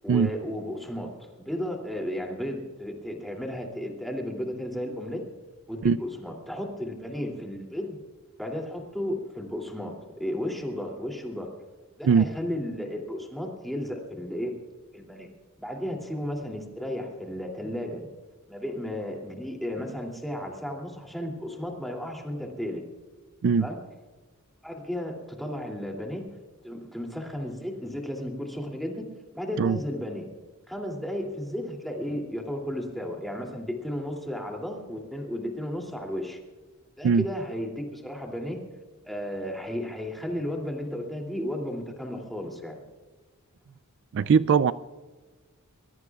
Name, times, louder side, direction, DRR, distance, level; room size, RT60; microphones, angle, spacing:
voice 1, 0.0-5.2 5.7-7.9 8.4-11.5 12.0-14.5 14.9-15.3 15.6-18.1 18.5-22.8 23.6-23.8 24.6-26.3 26.6-29.1 29.3-30.3 30.7-36.4 37.0-38.6 39.0-42.8, equal, ahead, 0 dB, 2.7 m, -34 dB
voice 2, 44.1-44.7, right 6 dB, 60° right, 16 dB, 0.3 m, -20 dB
23.0 x 21.5 x 2.4 m, 1.3 s
head